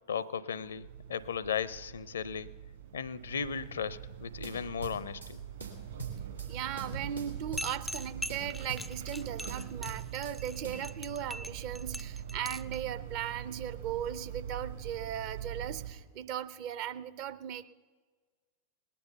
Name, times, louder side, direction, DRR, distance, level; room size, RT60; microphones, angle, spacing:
voice 1, 0.1-2.5 2.9-5.4, left 7 dB, 70° left, 20 dB, 0.5 m, -36 dB
sound 1, 0.6-15.9, right 9 dB, 65° right, 3.5 m, -43 dB
sound 2, 4.4-5.3 5.6-6.5 6.8-8.0 8.3-9.2 9.5-10.4 10.6-10.8, right 3 dB, 90° right, 2.4 m, -43 dB
voice 2, 6.5-17.6, right 10 dB, 45° right, 13 dB, 0.6 m, -38 dB
sound 3, 7.6-12.8, left 1 dB, 5° left, 0.3 m, -41 dB
19.0 x 10.0 x 6.8 m, 1.5 s
figure-of-eight pair, 90°, 0 cm